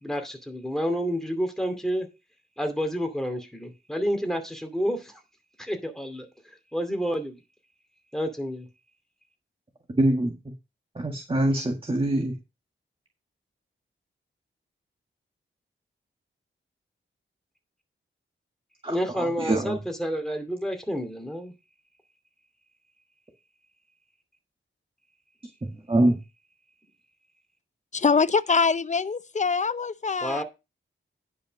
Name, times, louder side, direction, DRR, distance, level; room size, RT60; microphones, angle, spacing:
voice 1, 0.0-2.1 2.6-5.2 5.6-6.3 6.7-7.4 8.1-8.7 18.9-21.5 30.2-30.4, equal, ahead, 2.5 m, -29 dB
voice 2, 10.0-10.3 11.0-12.4 18.8-19.8 25.6-26.2, right 1 dB, 25° right, 1.7 m, -24 dB
voice 3, 27.9-30.4, left 5 dB, 35° left, 0.6 m, -24 dB
10.0 x 5.7 x 5.3 m
wide cardioid pair, 100°, 21 cm